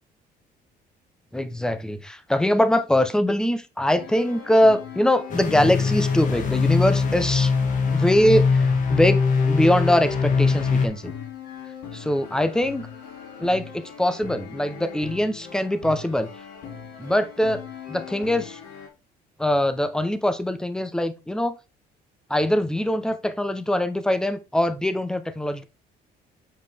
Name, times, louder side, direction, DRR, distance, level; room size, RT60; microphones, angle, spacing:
voice 1, 1.3-7.5 7.9-11.1 11.9-12.9 13.4-16.3 17.0-17.6 17.9-18.6 19.4-21.6 22.3-25.6, left 1 dB, 5° left, 0.8 m, -22 dB
sound 1, 4.0-18.9, left 7 dB, 85° left, 3.0 m, -40 dB
sound 2, 5.3-10.9, left 5 dB, 50° left, 1.8 m, -22 dB
7.4 x 4.9 x 3.5 m
cardioid pair, 110°, 17 cm